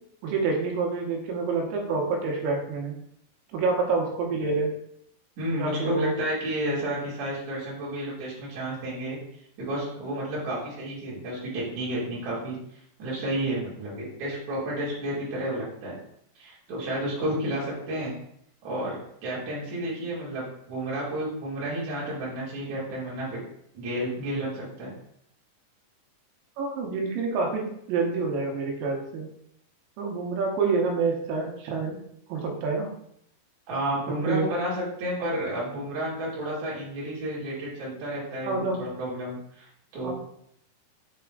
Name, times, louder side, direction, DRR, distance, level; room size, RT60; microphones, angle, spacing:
voice 1, 0.2-3.0 3.5-4.7 5.6-6.1 26.6-29.3 30.0-32.0 32.3-32.9 34.1-34.5 38.4-38.8 40.0-40.1, right 4 dB, 80° right, 0 dB, 3.2 m, -27 dB
voice 2, 5.4-9.2 9.6-12.6 13.0-16.0 16.3-18.1 18.6-19.0 19.2-23.4 23.7-24.9 33.7-40.1, right 1 dB, 45° right, -7 dB, 3.2 m, -31 dB
7.8 x 3.7 x 3.7 m, 0.71 s
omnidirectional pair, 5.4 m